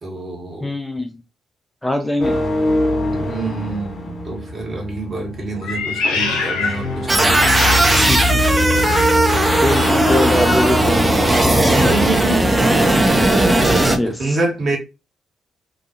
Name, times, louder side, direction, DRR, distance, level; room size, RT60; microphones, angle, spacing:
voice 1, 0.0-0.7 3.1-8.1 11.7-12.5 14.0-14.8, right 2 dB, 50° right, 1.4 m, -26 dB
voice 2, 0.6-1.2 1.8-2.4 8.1-8.3 9.6-11.9 12.3-12.4 14.0-14.4, left 1 dB, 10° left, 0.5 m, -22 dB
sound 1, 2.2-13.6, left 1 dB, 50° left, 1.2 m, -23 dB
Meow, 5.6-8.2 8.7-10.8, left 4 dB, 80° left, 0.5 m, -26 dB
sound 2, 7.1-14.0, right 2 dB, 25° right, 0.7 m, -16 dB
2.6 x 2.3 x 2.7 m
hypercardioid pair, 40°, 0 cm